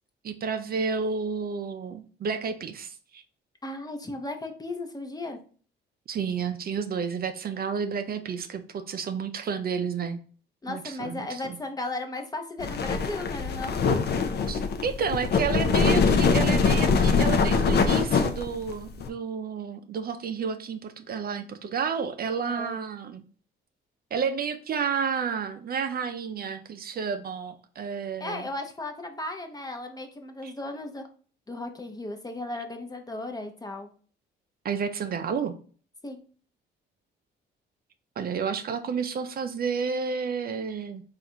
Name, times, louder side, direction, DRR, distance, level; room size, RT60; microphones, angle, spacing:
voice 1, 0.2-3.2 6.1-10.2 10.7-11.6 14.5-23.2 24.1-28.5 30.4-30.5 34.6-35.5 38.2-41.0, right 6 dB, 50° right, 8 dB, 0.5 m, -31 dB
voice 2, 3.6-5.4 10.6-13.8 22.5-22.8 28.2-31.0 31.5-33.9 36.0-36.2, left 2 dB, 20° left, 5 dB, 0.7 m, -35 dB
sound 1, 12.6-19.1, left 5 dB, 55° left, 0.6 m, -23 dB
3.8 x 2.5 x 4.3 m, 0.42 s
cardioid pair, 90°, 20 cm